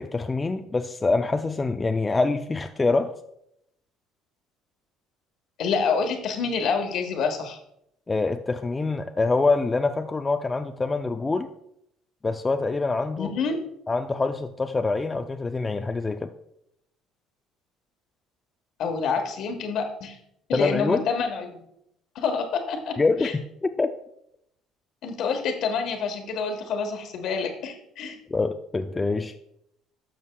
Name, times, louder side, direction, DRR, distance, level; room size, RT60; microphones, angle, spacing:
voice 1, 0.0-3.1 8.1-11.5 12.2-13.3 13.9-16.3 20.5-21.0 23.0-23.9 28.3-29.4, left 3 dB, 20° left, 7 dB, 0.4 m, -25 dB
voice 2, 5.6-7.6 13.2-13.6 18.8-20.1 20.5-21.6 22.1-23.3 25.0-28.2, left 5 dB, 65° left, 5 dB, 1.3 m, -27 dB
12.0 x 6.4 x 2.3 m, 0.77 s
cardioid pair, 100°, 0 cm